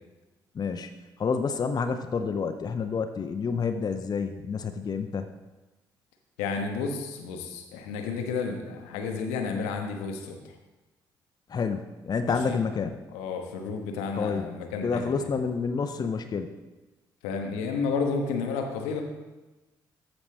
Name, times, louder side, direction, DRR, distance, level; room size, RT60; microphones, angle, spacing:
voice 1, 0.5-0.9 1.2-5.3 11.5-12.9 14.2-14.4 14.8-16.5, left 5 dB, 35° left, 7 dB, 0.6 m, -29 dB
voice 2, 6.4-10.5 12.3-12.6 13.1-15.3 17.2-19.0, left 5 dB, 75° left, 4 dB, 0.9 m, -31 dB
13.5 x 5.1 x 3.3 m, 1.1 s
figure-of-eight pair, 45°, 11 cm